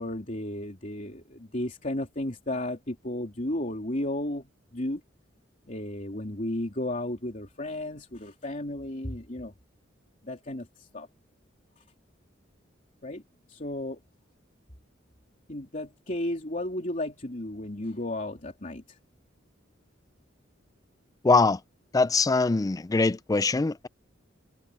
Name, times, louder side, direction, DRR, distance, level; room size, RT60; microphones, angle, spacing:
voice 1, 0.0-5.0 5.7-9.5 10.2-11.1 13.0-13.2 13.5-14.0 15.5-19.0, left 1 dB, 40° left, 3.2 m, -33 dB
voice 2, 21.2-21.6 21.9-23.9, left 3 dB, 20° left, 0.4 m, -23 dB
head